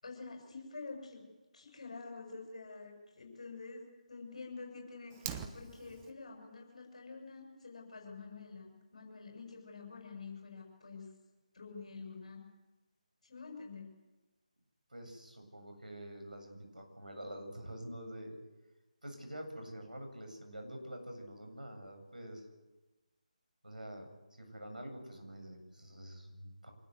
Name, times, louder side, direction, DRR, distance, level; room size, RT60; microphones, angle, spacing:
voice 1, 0.0-1.2 1.5-11.1 11.5-12.4 13.2-13.9, left 4 dB, 50° left, 0 dB, 6.9 m, -48 dB
Fire, 5.1-6.1, right 8 dB, 15° right, 1.1 m, -43 dB
voice 2, 14.9-18.4 19.0-22.4 23.6-26.7, equal, 85° right, 4 dB, 7.5 m, -47 dB
25.5 x 19.5 x 8.0 m, 1.2 s
figure-of-eight pair, 155°, 4 cm